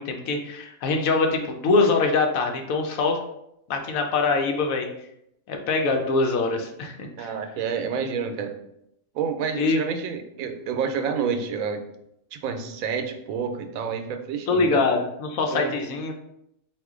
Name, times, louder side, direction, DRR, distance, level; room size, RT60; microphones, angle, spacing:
voice 1, 0.0-3.2 3.7-4.9 5.5-7.3 9.5-9.8 14.5-16.1, left 3 dB, 90° left, 3 dB, 1.1 m, -23 dB
voice 2, 7.2-8.5 9.1-11.8 12.3-14.8 15.5-15.7, right 6 dB, 85° right, 6 dB, 1.0 m, -29 dB
4.2 x 2.5 x 3.6 m, 0.79 s
omnidirectional pair, 1.4 m